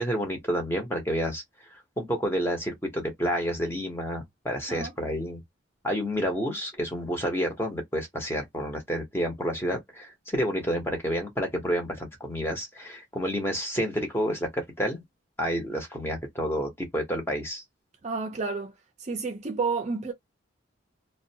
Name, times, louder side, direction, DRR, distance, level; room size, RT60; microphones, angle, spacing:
voice 1, 0.0-1.4 1.7-5.4 5.8-15.0 15.4-17.6, equal, 10° left, 0.7 m, -29 dB
voice 2, 18.0-18.7 19.0-20.1, right 4 dB, 35° right, 0.4 m, -30 dB
2.4 x 2.1 x 2.7 m
head